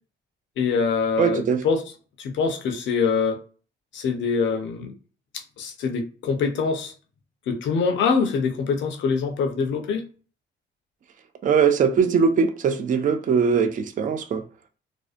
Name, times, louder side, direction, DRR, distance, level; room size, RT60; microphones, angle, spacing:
voice 1, 0.6-1.8 2.2-3.4 3.9-4.9 5.6-6.9 7.5-10.0, left 5 dB, 70° left, 0.6 m, -24 dB
voice 2, 1.2-1.6 11.4-14.4, right 6 dB, 40° right, 0.4 m, -21 dB
2.6 x 2.1 x 2.4 m
cardioid pair, 90°, 20 cm